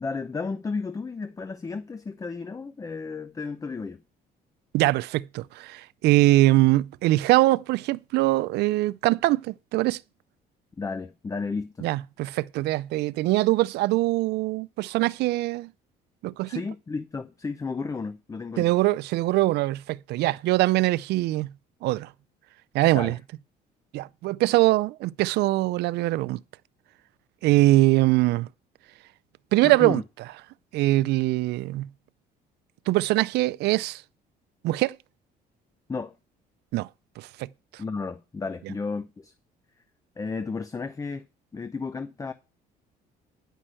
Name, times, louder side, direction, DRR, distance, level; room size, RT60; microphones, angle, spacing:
voice 1, 0.0-4.0 10.8-11.9 16.5-18.7 22.9-23.2 29.6-30.0 35.9-36.1 37.8-39.3 40.2-41.3 41.5-42.3, left 4 dB, 20° left, 0.7 m, -33 dB
voice 2, 4.7-10.0 11.8-15.7 16.2-16.6 18.6-21.5 21.8-22.1 22.7-23.2 23.9-26.4 27.4-28.5 29.5-30.0 30.7-31.9 32.9-34.0 34.6-35.0 36.7-36.9 37.2-37.5, right 18 dB, 80° right, 0.4 m, -22 dB
10.0 x 5.4 x 6.3 m
cardioid pair, 110°, 17 cm